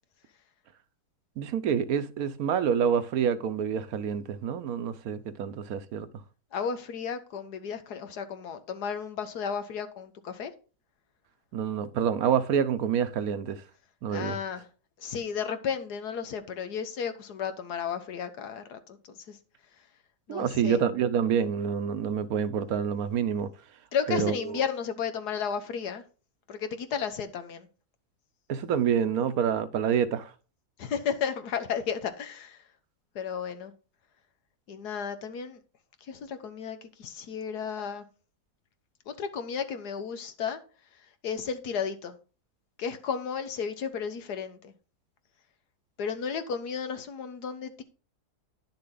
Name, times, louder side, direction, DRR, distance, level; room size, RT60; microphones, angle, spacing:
voice 1, 1.4-6.1 11.5-13.6 14.0-14.4 20.3-23.5 24.1-24.6 28.5-30.3, right 7 dB, 70° right, 1.1 m, -27 dB
voice 2, 6.5-10.5 14.1-14.6 15.0-19.0 19.3-19.4 20.3-20.8 23.9-26.0 26.5-27.7 30.8-32.6 33.1-33.7 34.7-35.6 36.1-38.0 39.1-40.6 41.2-42.1 42.8-44.7 46.0-47.8, left 7 dB, 85° left, 1.6 m, -33 dB
10.5 x 6.7 x 3.9 m
omnidirectional pair, 1.7 m